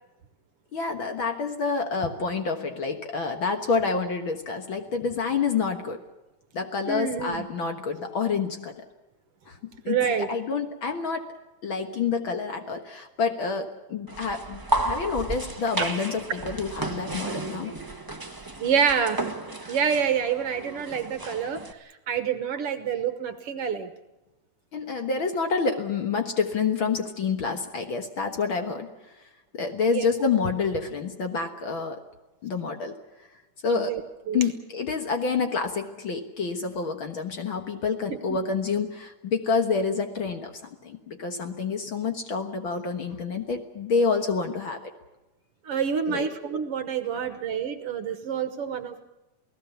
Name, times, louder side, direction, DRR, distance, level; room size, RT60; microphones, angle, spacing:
voice 1, 0.7-6.0 6.5-8.8 9.5-11.3 11.6-17.7 24.7-28.9 29.5-32.0 32.4-32.9 33.6-33.9 34.3-40.5 40.8-44.9 46.1-46.3, left 5 dB, 50° left, 5 dB, 1.9 m, -28 dB
voice 2, 6.8-7.4 9.9-10.3 18.6-19.2 19.7-21.7 22.1-23.9 29.9-30.1 33.6-34.0 34.3-34.4 38.3-38.4 45.6-49.1, right 7 dB, 60° right, 9 dB, 1.9 m, -27 dB
sound 1, 14.1-21.7, right 2 dB, 20° right, 0.5 m, -33 dB
28.5 x 18.0 x 7.0 m, 1.0 s
omnidirectional pair, 3.3 m